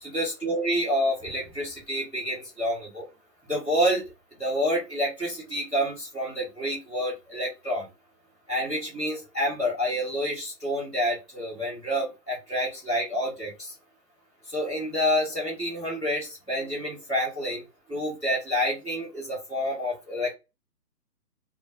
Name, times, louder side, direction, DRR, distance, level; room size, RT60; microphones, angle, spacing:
voice 1, 0.0-3.1 3.5-4.0 4.4-7.9 8.5-13.7 14.5-17.6 17.9-20.3, equal, ahead, -22 dB, 0.6 m, -28 dB
2.2 x 2.1 x 2.8 m, 0.25 s
figure-of-eight pair, 140°, 50 cm